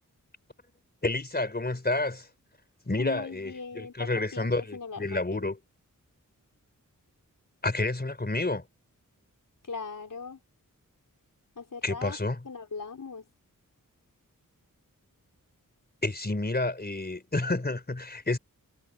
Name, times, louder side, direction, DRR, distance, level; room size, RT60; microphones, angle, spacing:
voice 1, 1.0-2.3 2.9-5.6 7.6-8.6 11.8-12.4 16.0-18.4, left 2 dB, 30° left, 4.3 m, -29 dB
voice 2, 3.0-5.5 9.6-10.4 11.6-12.2 12.4-13.3, left 5 dB, 70° left, 4.8 m, -40 dB
wide cardioid pair, 70°, 34 cm